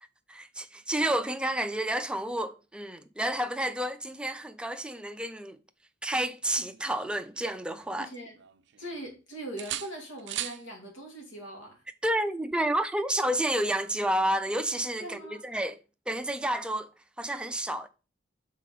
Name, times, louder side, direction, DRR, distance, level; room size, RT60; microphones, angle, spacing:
voice 1, 0.3-5.6 6.0-8.1 12.0-15.8 16.1-16.9 17.2-17.9, right 1 dB, 5° right, 0.4 m, -30 dB
sound 1, 6.4-8.0 8.4-9.2 9.6-10.6 12.5-12.7, right 12 dB, 60° right, 0.5 m, -40 dB
voice 2, 8.0-8.4 8.8-11.8 15.0-15.4, right 1 dB, 80° left, 2.3 m, -41 dB
5.8 x 4.1 x 5.0 m
head